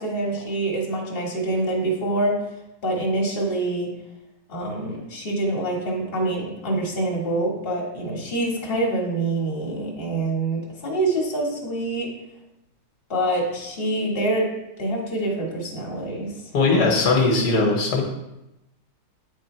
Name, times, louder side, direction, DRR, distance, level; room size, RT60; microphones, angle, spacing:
voice 1, 0.0-2.3 2.8-3.9 4.5-12.1 13.1-14.5 14.8-16.3, right 2 dB, 35° left, -2 dB, 1.5 m, -25 dB
voice 2, 16.5-18.0, left 3 dB, 75° left, 0 dB, 1.5 m, -19 dB
9.2 x 3.2 x 4.2 m, 0.94 s
omnidirectional pair, 1.8 m